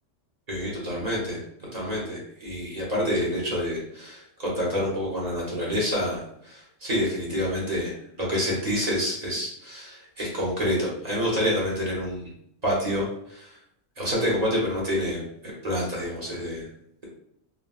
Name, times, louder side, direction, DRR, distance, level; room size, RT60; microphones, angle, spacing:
voice 1, 0.5-1.4 1.7-12.3 12.6-13.6 14.0-16.7, equal, 35° right, -5 dB, 0.8 m, -28 dB
3.6 x 2.1 x 2.3 m, 0.72 s
omnidirectional pair, 1.3 m